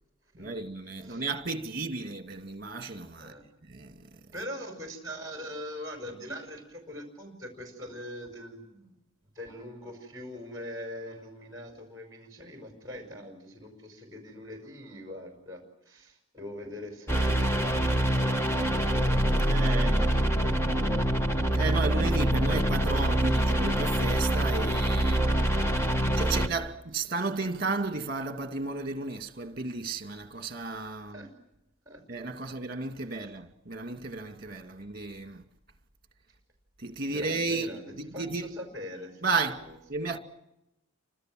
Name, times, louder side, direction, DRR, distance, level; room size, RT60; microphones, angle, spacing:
voice 1, 0.4-3.3 3.7-3.9 19.4-20.0 21.5-25.2 26.2-31.2 32.1-35.4 36.8-38.5 39.2-40.2, right 3 dB, 45° right, 2.1 m, -33 dB
voice 2, 4.3-8.9 9.3-21.2 31.1-31.3 31.9-32.0 33.2-33.3 37.1-39.3 39.5-39.8 40.0-40.1, left 1 dB, 15° right, 5.5 m, -42 dB
sound 1, 17.1-26.5, right 1 dB, 10° left, 1.3 m, -25 dB
30.0 x 25.5 x 7.7 m
head